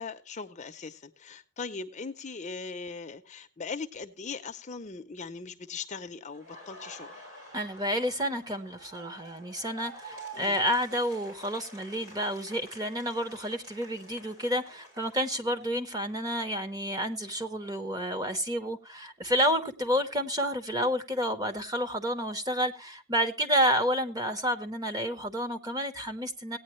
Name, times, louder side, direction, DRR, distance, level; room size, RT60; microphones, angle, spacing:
voice 1, 0.0-7.1 10.3-10.6, left 4 dB, 30° left, 0.6 m, -39 dB
Laughter, 6.3-16.1 16.5-18.5, right 1 dB, 65° right, 6.4 m, -50 dB
voice 2, 7.5-26.6, equal, 15° right, 0.9 m, -30 dB
17.0 x 9.3 x 3.1 m
head